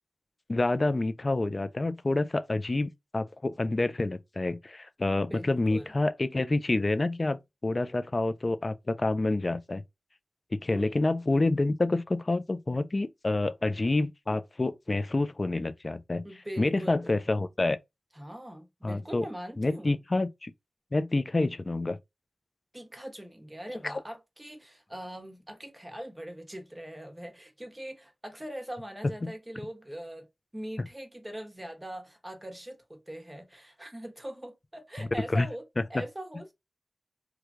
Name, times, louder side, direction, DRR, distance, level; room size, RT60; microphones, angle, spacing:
voice 1, 0.5-9.8 10.5-16.2 16.6-17.8 18.8-19.3 19.6-20.5 20.9-22.0 23.7-24.0 29.2-29.3 35.3-35.5 35.8-36.0, left 2 dB, 40° left, 0.4 m, -28 dB
voice 2, 5.2-5.9 10.7-11.0 16.2-17.1 18.1-20.0 22.7-30.3 30.5-35.6 35.9-36.5, right 1 dB, 15° right, 1.0 m, -42 dB
3.1 x 2.3 x 3.6 m
wide cardioid pair, 60°, 0 cm